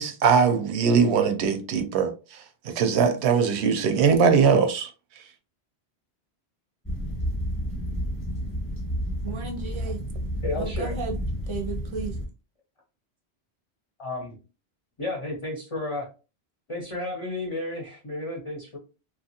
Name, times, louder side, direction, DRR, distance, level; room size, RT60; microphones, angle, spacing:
voice 1, 0.0-2.1 2.6-4.9, right 6 dB, 80° right, 0.9 m, -21 dB
sound 1, 6.8-12.3, equal, 15° left, 0.9 m, -31 dB
voice 2, 9.2-10.0 10.5-11.2 11.5-12.2, right 4 dB, 35° right, 0.6 m, -34 dB
voice 3, 10.4-10.9 14.0-14.4 15.0-16.1 16.7-18.8, left 2 dB, 35° left, 0.6 m, -32 dB
2.9 x 2.4 x 2.7 m
omnidirectional pair, 1.1 m